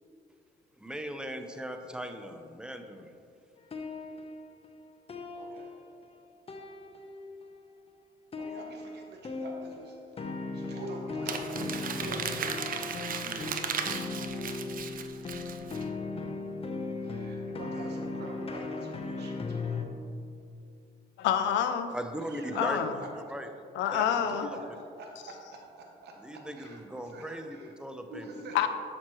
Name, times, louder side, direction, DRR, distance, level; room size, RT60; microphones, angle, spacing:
voice 1, 0.8-3.1 13.2-13.5 21.9-23.0 23.3-23.5 23.9-24.6 26.2-28.3, equal, 5° right, 6 dB, 0.6 m, -39 dB
sound 1, 3.6-6.2 6.5-7.5 8.3-19.8, left 3 dB, 30° left, 0.7 m, -37 dB
voice 2, 5.3-5.7 8.4-10.3 10.5-12.5 14.6-15.0 17.0-19.9 22.2-23.1 23.9-27.7 28.1-28.7, right 2 dB, 65° right, 1 dB, 0.9 m, -46 dB
Crumpling crinkling, 11.3-15.8, right 6 dB, 50° right, 0.6 m, -36 dB
voice 3, 21.2-21.9 22.6-22.9 23.8-24.5 28.5-28.7, left 9 dB, 85° left, 9 dB, 0.5 m, -27 dB
7.2 x 6.3 x 3.0 m, 2.5 s
cardioid pair, 75°, 18 cm